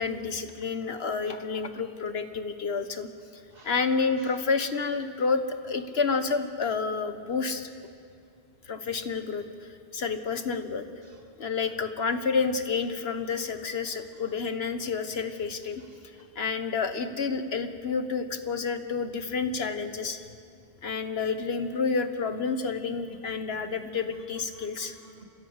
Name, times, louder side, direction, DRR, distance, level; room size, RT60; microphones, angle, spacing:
voice 1, 0.0-3.1 3.6-7.7 8.7-10.8 11.4-15.8 16.3-20.2 20.8-24.9, left 5 dB, 80° left, 8 dB, 1.5 m, -29 dB
voice 2, 11.0-11.5 13.9-14.2 15.9-16.3 23.1-23.2 23.6-25.2, right 3 dB, 65° right, 1 dB, 3.0 m, -53 dB
27.5 x 16.0 x 8.1 m, 2.3 s
omnidirectional pair, 1.0 m